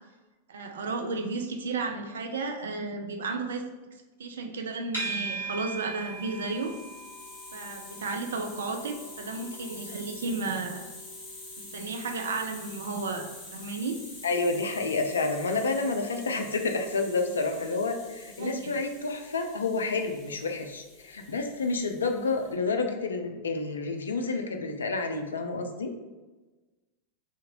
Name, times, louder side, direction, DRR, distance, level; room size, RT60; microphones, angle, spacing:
voice 1, 0.5-3.7 4.2-6.7 7.5-10.8 11.6-14.0 18.4-18.7, right 3 dB, 65° right, 4 dB, 0.3 m, -33 dB
sound 1, 4.9-22.1, right 3 dB, 80° right, 1.2 m, -44 dB
Hiss, 5.9-22.5, left 2 dB, 30° left, 1.0 m, -47 dB
voice 2, 14.2-25.9, left 3 dB, 70° left, 5 dB, 0.3 m, -29 dB
2.5 x 2.4 x 2.9 m, 1.2 s
figure-of-eight pair, 90°, 0 cm